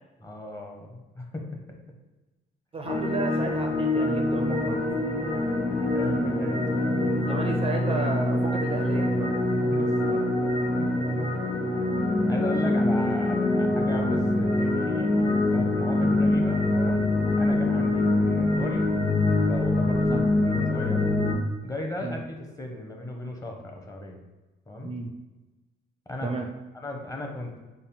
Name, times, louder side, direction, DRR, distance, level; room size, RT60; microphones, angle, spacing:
voice 1, 0.2-1.5 5.9-7.2 9.6-10.3 10.8-11.3 12.3-17.0 17.4-18.9 19.4-21.1 21.6-24.2 24.7-24.9 26.1-26.3 26.7-27.6, left 1 dB, 15° left, 2 dB, 0.7 m, -37 dB
voice 2, 2.7-4.8 7.2-9.3 20.1-20.3 22.0-22.2 24.8-25.1 26.2-26.5, right 3 dB, 30° right, 3 dB, 0.4 m, -32 dB
sound 1, 2.8-21.3, left 2 dB, 65° left, 1.3 m, -24 dB
4.0 x 2.1 x 3.7 m, 1.1 s
cardioid pair, 90°, 20 cm